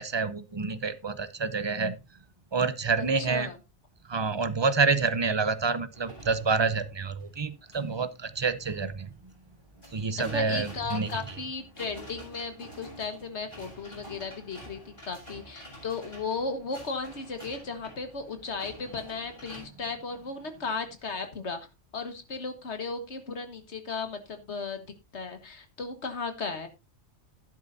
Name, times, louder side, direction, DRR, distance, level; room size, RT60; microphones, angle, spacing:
voice 1, 0.0-2.0 2.5-3.5 4.1-9.1 9.9-11.1, right 4 dB, 30° right, 13 dB, 0.6 m, -28 dB
voice 2, 3.0-3.6 10.2-21.6 21.9-26.7, left 4 dB, 65° left, 8 dB, 1.8 m, -35 dB
sound 1, 5.9-19.7, equal, 40° left, 7.1 m, -49 dB
12.0 x 10.5 x 2.6 m, 0.25 s
omnidirectional pair, 1.2 m